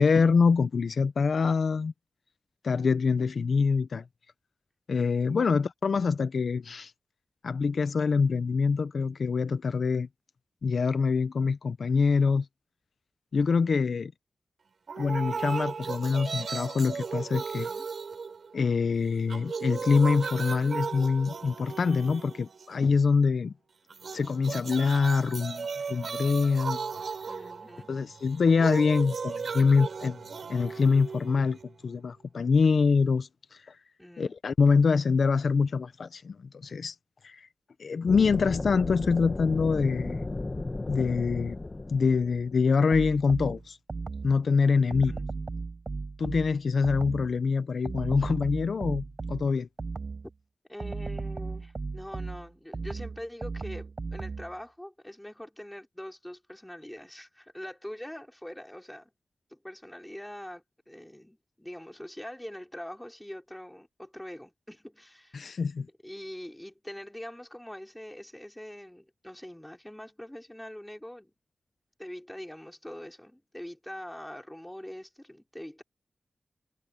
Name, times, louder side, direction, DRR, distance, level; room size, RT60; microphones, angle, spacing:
voice 1, 0.0-1.9 2.6-4.0 4.9-6.9 7.4-10.1 10.6-12.5 13.3-14.1 15.0-17.7 18.5-23.5 24.1-26.8 27.9-30.2 30.5-31.6 31.8-33.6 34.2-36.9 37.2-37.5 37.8-40.2 40.9-41.6 41.9-43.8 44.2-45.1 46.2-49.7 65.3-65.9, left 5 dB, 75° left, 0.7 m, -25 dB
sound 1, 14.9-18.9 19.2-22.9 23.9-31.9, right 5 dB, 75° right, 4.6 m, -36 dB
voice 2, 17.5-18.0 27.3-27.9 34.0-34.4 44.8-45.3 50.7-59.1 59.5-65.6 66.0-71.3 72.0-75.8, left 1 dB, 10° left, 5.5 m, -43 dB
sound 2, 38.1-42.8, left 2 dB, 30° left, 1.5 m, -34 dB
sound 3, 42.9-44.4 44.9-47.4 47.9-50.3 50.8-54.6, right 3 dB, 45° right, 0.7 m, -36 dB
wide cardioid pair, 75°, 0 cm